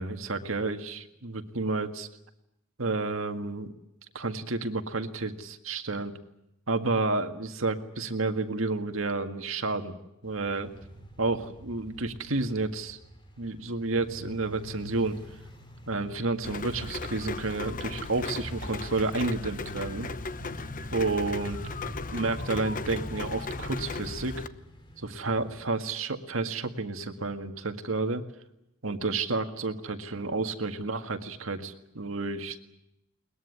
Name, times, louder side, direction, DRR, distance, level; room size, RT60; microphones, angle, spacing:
voice 1, 0.0-2.1 2.8-3.7 4.1-6.1 6.7-10.0 10.2-10.7 11.2-13.0 13.4-15.2 15.9-20.1 20.9-21.7 22.1-24.4 25.0-28.2 28.8-32.6, right 3 dB, 75° right, 6 dB, 1.9 m, -30 dB
sound 1, 10.2-25.7, equal, 25° left, 3.3 m, -46 dB
Rain, 16.4-24.5, left 3 dB, 40° left, 0.9 m, -36 dB
21.5 x 20.0 x 9.7 m, 0.85 s
head